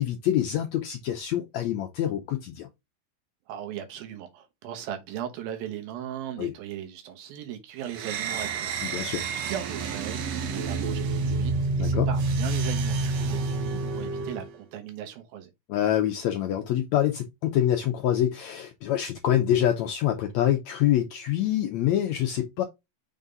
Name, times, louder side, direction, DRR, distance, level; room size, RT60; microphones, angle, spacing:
voice 1, 0.0-2.7 6.4-6.5 8.8-9.2 11.8-12.1 15.7-22.6, left 11 dB, 85° left, 1.5 m, -26 dB
voice 2, 3.5-15.5, right 10 dB, 90° right, 3.0 m, -38 dB
sound 1, 7.9-14.5, right 3 dB, 70° right, 1.6 m, -28 dB
6.3 x 3.8 x 3.9 m
omnidirectional pair, 4.0 m